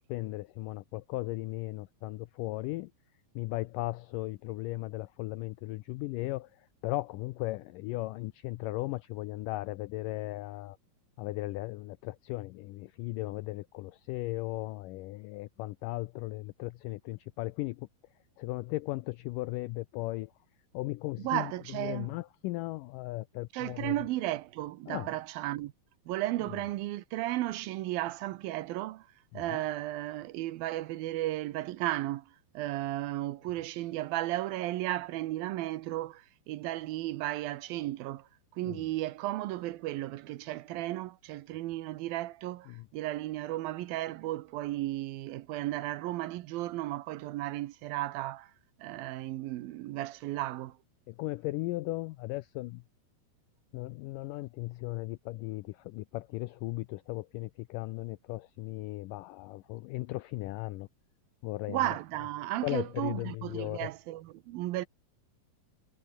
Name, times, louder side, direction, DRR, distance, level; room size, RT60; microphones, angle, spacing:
voice 1, 0.1-2.9 3.4-10.8 11.2-17.9 18.4-20.3 20.7-24.0 24.9-25.1 29.3-29.4 38.6-38.9 42.7-42.9 51.1-52.8 53.7-60.9 61.4-61.9 62.6-63.9, left 19 dB, 85° left, 1.9 m, -37 dB
voice 2, 21.2-22.1 23.5-25.7 26.1-29.1 29.3-32.3 32.5-38.3 38.5-48.5 48.8-50.8 61.7-64.9, right 16 dB, 75° right, 2.6 m, -34 dB
omnidirectional pair, 4.4 m